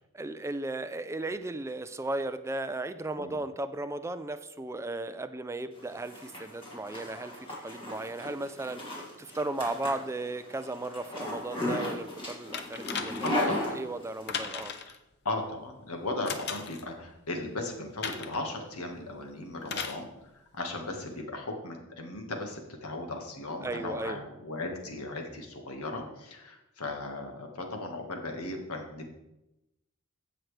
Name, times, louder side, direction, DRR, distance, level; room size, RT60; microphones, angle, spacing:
voice 1, 0.1-14.7 23.6-24.2, right 2 dB, 15° right, 11 dB, 0.4 m, -36 dB
Zipper (clothing), 5.8-14.5, left 1 dB, 25° left, 2.2 m, -36 dB
sound 1, 12.5-13.5 14.3-15.0 16.3-16.9 18.0-18.4 19.7-20.0 21.1-21.2, left 6 dB, 50° left, 0.8 m, -36 dB
voice 2, 13.2-13.7 15.3-29.1, left 2 dB, 85° left, 3 dB, 1.7 m, -37 dB
15.5 x 6.0 x 3.3 m, 0.93 s
head